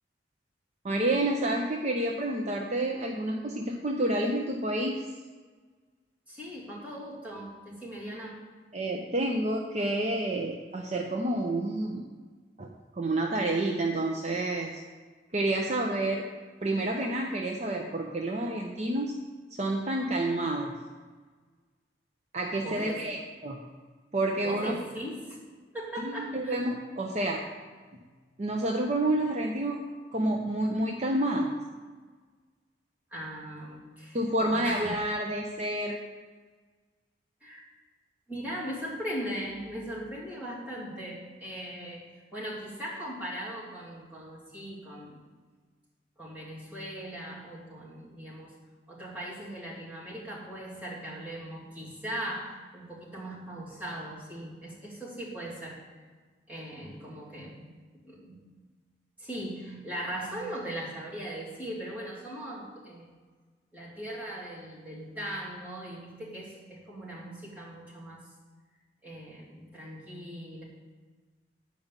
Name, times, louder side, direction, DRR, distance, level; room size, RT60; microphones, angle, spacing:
voice 1, 0.8-5.1 8.7-12.0 12.6-14.8 15.3-16.3 16.6-19.1 19.6-20.7 22.3-23.6 24.1-24.7 26.0-27.4 28.4-29.8 30.1-31.5 34.1-36.0, right 1 dB, 40° right, 1 dB, 0.7 m, -29 dB
voice 2, 6.3-8.5 22.6-23.1 24.4-25.4 25.7-26.6 33.1-34.2 34.5-35.0 37.4-37.7 38.3-45.2 46.2-48.5 48.9-55.9 56.5-57.7 58.1-58.4 59.2-63.1 63.7-68.3 69.0-70.6, equal, 10° right, -7 dB, 2.8 m, -39 dB
10.0 x 5.2 x 7.3 m, 1.4 s
head